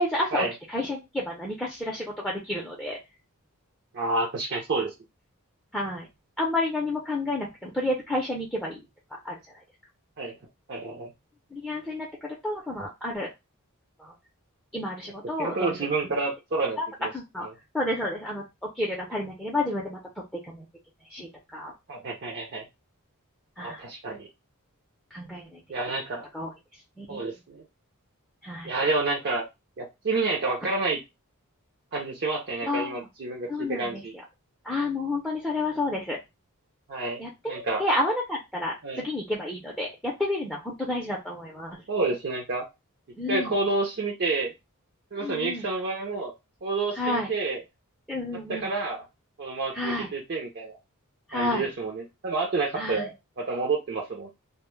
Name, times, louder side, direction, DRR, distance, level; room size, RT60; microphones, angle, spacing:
voice 1, 0.0-3.0 5.7-6.1 6.4-8.8 9.2-9.4 11.5-13.3 14.0-14.1 14.7-15.9 16.8-16.9 17.1-17.5 17.7-18.4 18.8-20.6 21.1-21.7 23.6-23.8 25.1-25.6 26.3-26.5 27.0-27.2 28.4-28.7 32.7-33.1 33.5-34.2 34.6-36.2 37.2-41.8 43.2-43.5 45.2-45.7 47.0-47.3 48.1-48.7 49.7-50.1 51.3-51.7 52.7-53.1, left 1 dB, 5° left, -3 dB, 0.5 m, -30 dB
voice 2, 3.9-4.9 10.2-10.3 10.7-11.1 15.4-17.1 21.9-22.6 23.6-24.3 25.7-26.3 27.1-27.6 28.6-29.4 29.8-31.0 31.9-34.1 36.9-37.2 37.5-37.8 38.8-39.1 41.9-42.6 43.3-44.5 45.1-46.3 46.6-47.6 48.5-49.0 49.4-50.8 51.3-53.1 53.4-54.3, right 3 dB, 50° right, 0 dB, 0.5 m, -29 dB
2.1 x 2.0 x 3.0 m, 0.22 s
head